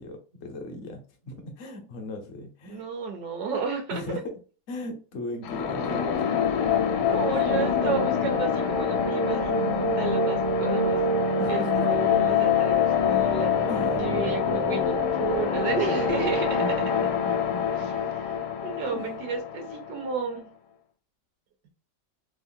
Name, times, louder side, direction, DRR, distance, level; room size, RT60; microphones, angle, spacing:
voice 1, 0.0-2.9 3.9-4.4 4.7-6.4 7.0-7.3 11.4-11.9 13.7-14.1 15.8-18.0 18.9-19.1, left 2 dB, 55° left, 3 dB, 0.8 m, -37 dB
voice 2, 2.7-4.0 7.0-11.0 11.5-13.7 14.0-16.6 17.7-20.5, right 5 dB, 65° right, 4 dB, 1.1 m, -32 dB
sound 1, 5.4-20.1, left 5 dB, 75° left, 1.2 m, -25 dB
3.5 x 2.0 x 2.5 m, 0.36 s
omnidirectional pair, 2.0 m